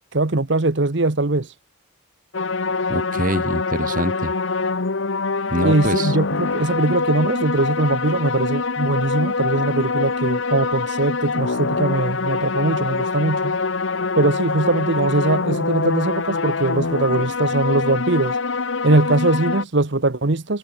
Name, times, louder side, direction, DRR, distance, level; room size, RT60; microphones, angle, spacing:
voice 1, 0.1-1.5 5.6-13.6 14.2-18.4 18.8-20.6, right 2 dB, 60° right, 1.1 m, -21 dB
sound 1, 2.3-19.6, left 4 dB, 70° left, 1.0 m, -24 dB
voice 2, 2.9-4.3 5.5-6.2, right 1 dB, 40° right, 5.4 m, -24 dB
head